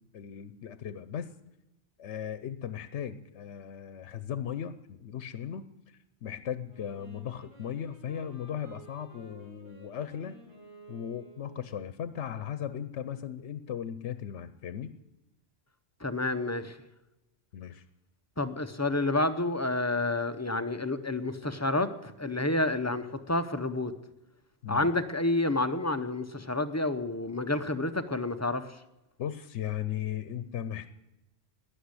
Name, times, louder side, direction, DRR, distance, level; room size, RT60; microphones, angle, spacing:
voice 1, 0.1-1.3 2.0-10.4 10.9-14.9 17.5-17.8 24.6-24.9 29.2-30.9, left 9 dB, 80° left, 13 dB, 1.0 m, -37 dB
Wind instrument woodwind instrument, 6.6-11.8, right 3 dB, 80° right, 7.1 m, -53 dB
voice 2, 16.0-16.8 18.4-23.9 24.7-28.7, left 2 dB, 15° left, 9 dB, 0.7 m, -29 dB
13.0 x 9.9 x 9.8 m, 0.95 s
omnidirectional pair, 1.2 m